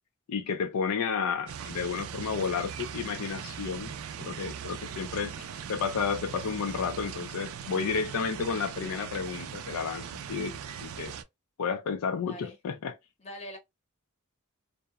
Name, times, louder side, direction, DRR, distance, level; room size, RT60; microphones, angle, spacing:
voice 1, 0.3-3.9 4.2-5.3 5.7-11.1 11.6-12.9, left 6 dB, 80° left, 0.4 m, -32 dB
sound 1, 1.5-11.2, right 8 dB, 70° right, 0.3 m, -40 dB
voice 2, 5.2-5.6 12.3-12.6 13.2-13.6, equal, 30° left, 0.7 m, -44 dB
2.7 x 2.0 x 2.3 m
head